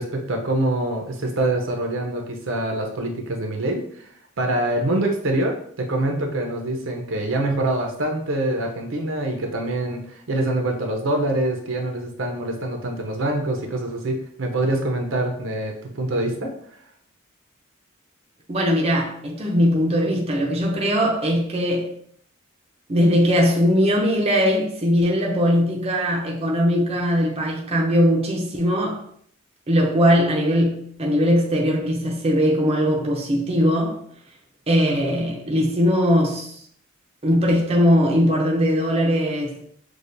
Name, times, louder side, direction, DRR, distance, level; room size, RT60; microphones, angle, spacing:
voice 1, 0.0-4.1 4.4-16.5, right 1 dB, 65° right, 0.7 m, -25 dB
voice 2, 18.5-21.9 22.9-29.0 29.7-34.0 34.7-36.6 37.2-39.7, equal, 30° right, 0.6 m, -20 dB
6.2 x 2.3 x 2.6 m
head